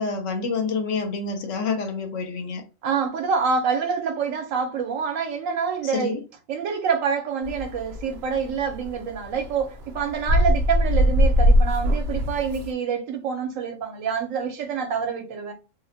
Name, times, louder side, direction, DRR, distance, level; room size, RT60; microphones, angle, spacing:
voice 1, 0.0-2.6 5.8-6.2, left 4 dB, 75° left, 0.9 m, -27 dB
voice 2, 2.8-6.2 6.5-15.5, right 6 dB, 80° right, 1.0 m, -26 dB
sound 1, 7.4-12.7, equal, 65° right, 0.7 m, -21 dB
2.5 x 2.1 x 2.6 m
omnidirectional pair, 1.3 m